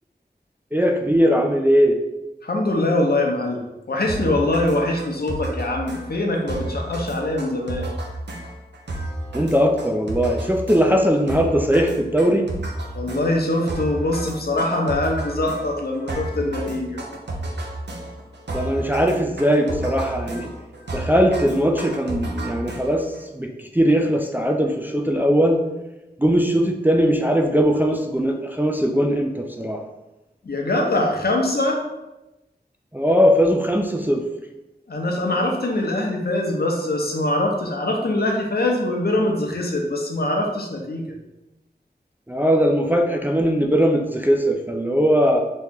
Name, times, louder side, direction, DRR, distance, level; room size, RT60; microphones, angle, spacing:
voice 1, 0.7-2.0 9.3-12.5 18.5-20.5 20.9-25.6 26.2-29.8 32.9-34.3 42.3-45.4, equal, 10° right, 3 dB, 0.3 m, -20 dB
voice 2, 2.4-7.9 12.9-17.0 30.4-31.8 34.9-41.1, left 1 dB, 65° left, 1 dB, 0.7 m, -23 dB
sound 1, 4.1-23.2, right 1 dB, 80° right, 0.6 m, -32 dB
3.1 x 2.8 x 3.5 m, 0.99 s
wide cardioid pair, 60°, 18 cm